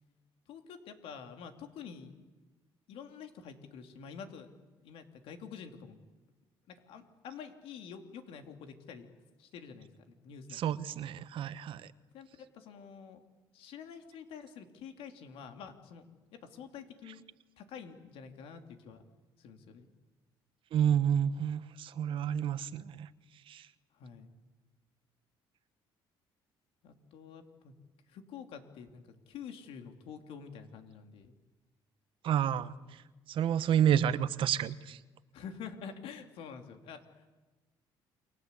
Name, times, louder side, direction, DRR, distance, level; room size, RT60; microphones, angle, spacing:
voice 1, 0.5-2.1 2.9-4.5 4.8-6.0 6.7-9.1 9.4-10.6 10.9-11.0 12.1-13.2 13.5-16.1 16.3-17.2 17.6-19.0 19.4-19.9 24.0-24.3 26.8-27.7 28.1-31.3 35.3-37.0, left 7 dB, 75° left, 6 dB, 3.1 m, -48 dB
voice 2, 10.5-11.9 20.7-23.1 23.5-23.6 32.2-32.7 33.3-35.0, right 9 dB, 65° right, 14 dB, 1.2 m, -29 dB
29.0 x 23.0 x 8.4 m, 1.2 s
cardioid pair, 100°, 10 cm